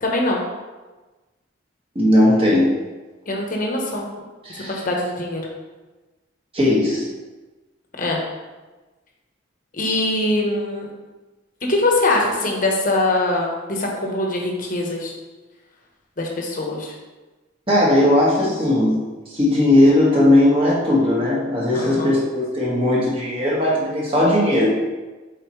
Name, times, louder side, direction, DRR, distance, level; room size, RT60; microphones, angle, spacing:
voice 1, 0.0-0.4 3.3-4.1 4.5-5.5 8.0-8.2 9.7-10.9 11.7-15.1 16.2-16.9 21.7-22.1, left 2 dB, 45° left, -1 dB, 1.1 m, -22 dB
voice 2, 2.0-2.8 4.5-4.8 6.5-7.1 17.7-24.8, left 1 dB, 30° right, -5 dB, 1.8 m, -18 dB
8.0 x 4.4 x 3.2 m, 1.2 s
head